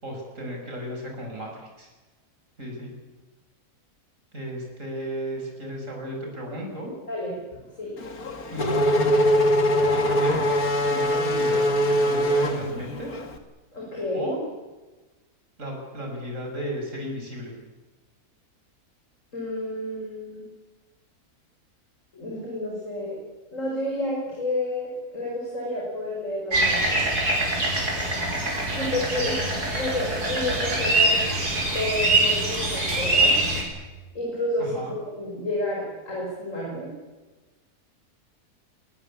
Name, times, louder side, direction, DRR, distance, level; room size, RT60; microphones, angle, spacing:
voice 1, 0.0-1.9 2.6-2.9 4.3-6.9 8.5-9.2 9.9-10.5 10.9-13.2 14.1-14.4 15.6-17.5 34.6-35.0, equal, 55° right, 1 dB, 6.2 m, -34 dB
Race car auto racing / Accelerating revving vroom, 8.0-13.3, equal, 70° left, 2.6 m, -22 dB
voice 2, 13.7-14.3 19.3-20.5 22.1-23.2 23.5-27.0 28.7-29.4 29.7-31.2 31.7-33.3 34.1-36.9, left 1 dB, 55° left, -3 dB, 6.8 m, -30 dB
sound 1, 26.5-33.6, right 2 dB, 85° right, 6.7 m, -24 dB
24.0 x 19.5 x 8.6 m, 1.2 s
omnidirectional pair, 1.6 m